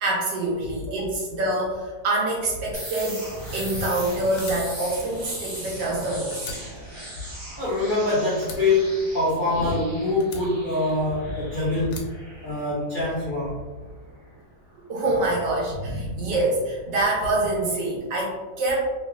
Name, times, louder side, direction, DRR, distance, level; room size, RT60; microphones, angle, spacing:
voice 1, 0.0-6.6 12.4-12.5 14.8-18.8, right 2 dB, 75° right, -3 dB, 1.5 m, -26 dB
sound 1, 2.7-14.4, right 1 dB, 35° right, 0.4 m, -39 dB
Fire, 4.4-6.0 6.3-8.0 8.4-9.8 10.2-11.4 11.9-13.0, left 3 dB, 85° left, 1.3 m, -42 dB
voice 2, 7.6-12.1 12.4-13.6 15.9-16.2, left 2 dB, 60° left, -10 dB, 0.5 m, -24 dB
3.2 x 3.1 x 2.3 m, 1.3 s
omnidirectional pair, 2.0 m